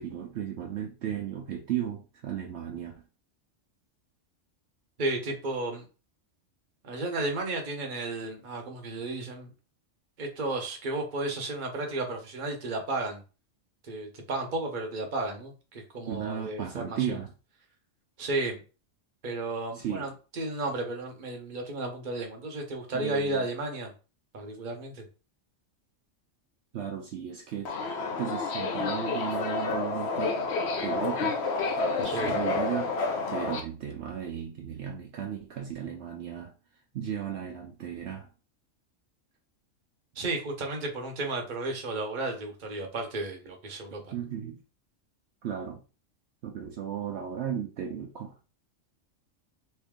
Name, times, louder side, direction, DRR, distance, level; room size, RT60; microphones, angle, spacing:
voice 1, 0.0-3.0 16.1-17.3 19.7-20.1 22.9-23.5 26.7-27.7 28.1-30.5 30.8-31.4 32.0-33.0 33.3-36.5 36.9-38.3 44.1-44.6 45.4-45.8 46.4-48.3, right 9 dB, 70° right, 0.8 m, -35 dB
voice 2, 5.0-5.8 6.8-9.5 10.2-13.2 13.8-17.2 18.2-18.6 19.2-23.9 24.3-25.0 32.0-32.3 40.1-44.2, right 2 dB, 45° right, 0.9 m, -33 dB
Subway metro underground, 27.7-33.6, left 3 dB, 60° left, 0.9 m, -29 dB
3.3 x 2.7 x 3.5 m
omnidirectional pair, 1.3 m